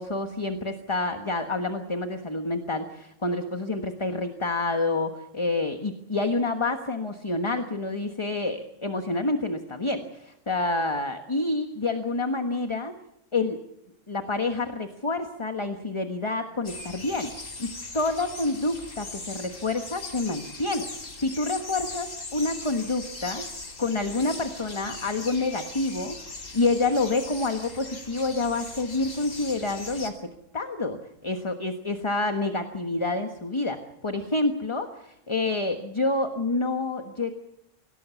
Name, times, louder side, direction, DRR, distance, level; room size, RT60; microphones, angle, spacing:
voice 1, 0.0-12.9 13.3-13.6 14.1-17.3 17.6-23.4 23.8-26.2 26.5-30.2 30.5-33.8 34.0-37.3, left 2 dB, 25° left, 6 dB, 1.3 m, -28 dB
sound 1, 16.6-30.1, left 3 dB, 80° left, 3.3 m, -40 dB
25.5 x 17.5 x 8.3 m, 0.81 s
omnidirectional pair, 1.3 m